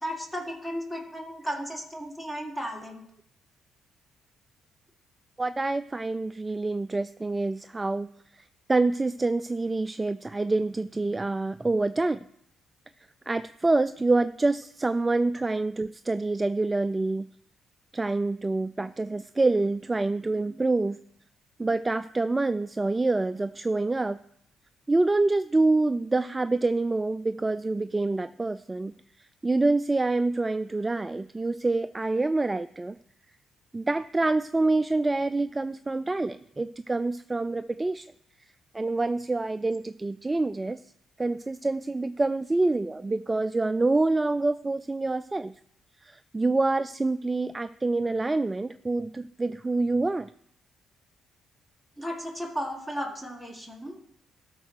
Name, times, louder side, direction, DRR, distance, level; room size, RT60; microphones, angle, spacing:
voice 1, 0.0-3.0 52.0-54.0, equal, 10° left, 1 dB, 1.8 m, -34 dB
voice 2, 5.4-8.1 8.3-12.2 13.3-17.3 17.9-21.0 21.6-24.2 24.9-28.9 29.4-33.0 33.7-38.1 38.7-40.8 41.2-45.5 46.0-50.3, right 2 dB, 20° right, 13 dB, 0.3 m, -26 dB
12.5 x 4.5 x 6.3 m, 0.69 s
cardioid pair, 90°, 0 cm